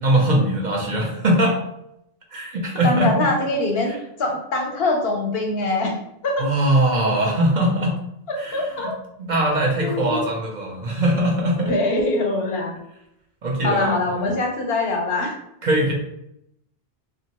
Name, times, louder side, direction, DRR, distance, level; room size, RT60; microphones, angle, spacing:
voice 1, 0.0-1.6 2.3-3.3 3.9-4.0 6.4-8.0 8.4-8.9 9.2-11.7 13.4-14.3 15.6-15.9, right 1 dB, 55° right, -1 dB, 0.7 m, -21 dB
voice 2, 2.8-6.0 6.2-6.5 8.3-8.9 9.8-10.3 11.7-12.8 13.6-15.4, left 2 dB, 70° left, 2 dB, 0.9 m, -23 dB
2.9 x 2.6 x 2.8 m, 0.80 s
omnidirectional pair, 1.0 m